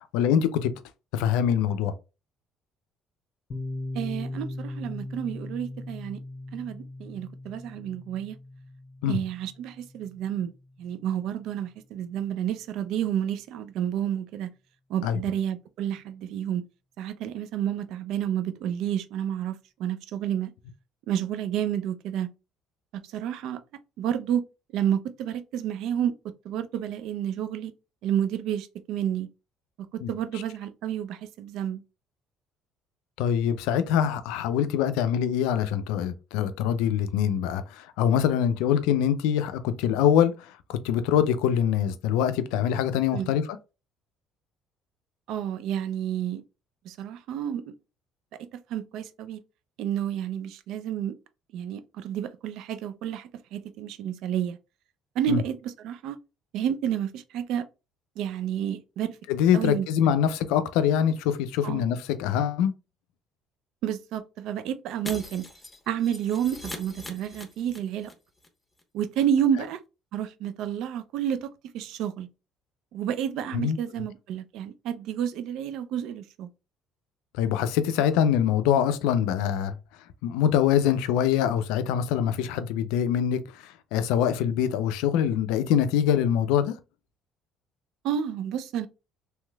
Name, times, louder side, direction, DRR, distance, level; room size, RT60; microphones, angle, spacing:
voice 1, 0.1-0.7 1.1-1.9 9.0-9.2 15.0-15.2 30.0-30.1 33.2-43.4 55.3-55.4 59.3-62.7 73.5-73.8 77.4-79.7 80.2-86.7, left 9 dB, 75° left, 0.4 m, -24 dB
Piano, 3.5-10.9, left 2 dB, 40° left, 0.9 m, -39 dB
voice 2, 3.9-6.2 6.5-8.4 9.1-10.5 10.8-14.5 14.9-16.6 17.0-20.5 21.1-22.3 23.1-23.6 24.0-24.4 24.7-26.1 26.4-27.7 28.0-29.3 29.9-31.8 43.1-43.3 45.3-46.4 46.8-47.7 48.7-49.4 49.8-51.1 51.5-54.6 55.2-56.2 56.5-57.6 58.2-59.2 59.5-59.9 61.6-61.9 63.8-65.5 65.9-68.1 68.9-69.8 70.1-71.5 71.7-72.3 72.9-76.5 88.0-88.9, right 9 dB, 70° right, 0.4 m, -30 dB
Shatter, 65.0-68.1 68.4-68.5 68.8-68.9, left 2 dB, 15° left, 1.0 m, -41 dB
3.1 x 3.0 x 2.3 m
hypercardioid pair, 65°, 0 cm